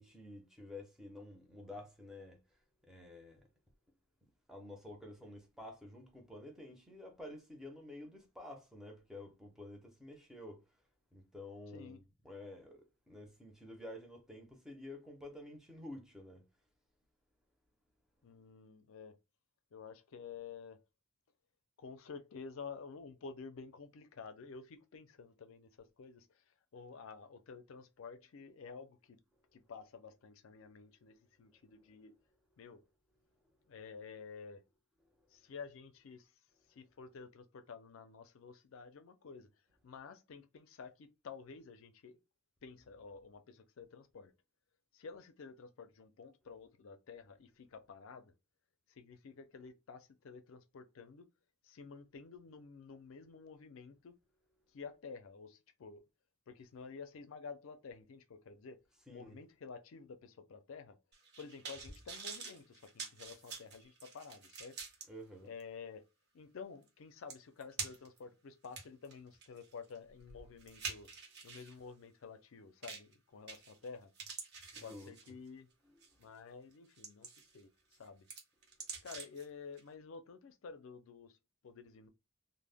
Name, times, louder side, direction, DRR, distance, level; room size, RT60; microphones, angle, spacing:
voice 1, 0.0-2.4 2.8-3.4 4.5-10.6 11.1-16.5 31.9-32.0 59.1-59.4 65.1-65.5 74.7-75.1 75.8-76.0, left 1 dB, ahead, 0.5 m, -50 dB
voice 2, 18.2-19.2 19.7-20.8 21.8-29.2 29.5-32.1 32.6-32.8 33.7-34.6 35.3-36.3 36.7-39.5 39.8-42.2 42.6-44.3 44.9-48.3 48.9-51.3 51.6-54.1 54.7-56.0 56.5-58.8 59.1-61.0 61.4-64.8 65.4-66.0 66.3-71.1 71.4-74.1 74.8-75.7 76.2-77.7 78.0-78.3 79.0-81.4 81.6-82.1, left 5 dB, 70° left, 0.4 m, -51 dB
sound 1, 61.1-65.0 65.6-65.7 66.9-67.0 67.3-68.2 68.6-71.7 72.8-73.1 73.5-73.9 74.1-75.5 76.0-76.2 76.7-77.6 77.9-79.4 79.8-79.9, right 5 dB, 50° right, 0.8 m, -47 dB
2.1 x 2.1 x 3.3 m
head